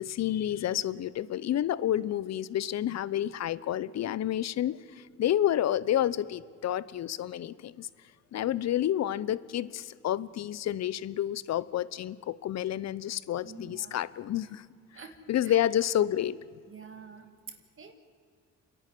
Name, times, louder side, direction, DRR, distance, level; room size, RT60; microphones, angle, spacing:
voice 1, 0.0-7.9 8.3-14.6 15.3-16.4, left 11 dB, 60° left, 19 dB, 0.8 m, -29 dB
voice 2, 13.4-14.0 14.9-15.2 15.4-15.6 16.7-17.9, right 6 dB, 45° right, 6 dB, 2.2 m, -47 dB
28.5 x 11.0 x 10.0 m, 2.1 s
cardioid pair, 90°, 30 cm